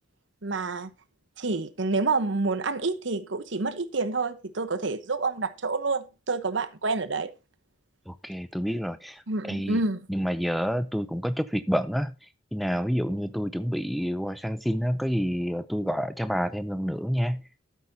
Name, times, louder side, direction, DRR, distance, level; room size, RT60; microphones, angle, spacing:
voice 1, 0.4-0.9 1.4-7.3 9.3-10.1, right 3 dB, 65° right, 1.0 m, -28 dB
voice 2, 8.1-9.8 10.1-12.1 12.5-17.4, equal, ahead, 0.4 m, -28 dB
13.0 x 8.3 x 2.8 m
head